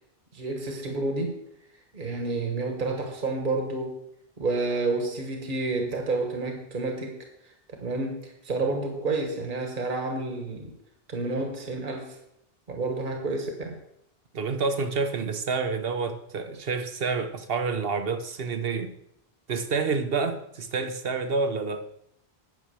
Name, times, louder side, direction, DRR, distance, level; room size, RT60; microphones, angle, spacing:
voice 1, 0.3-1.3 1.9-4.0 4.4-7.2 7.8-10.7 11.1-12.2 12.7-13.8, right 3 dB, 50° right, 1.6 m, -29 dB
voice 2, 14.3-18.9 19.5-21.9, right 4 dB, 70° right, 1.2 m, -28 dB
9.5 x 6.3 x 6.9 m
omnidirectional pair, 1.0 m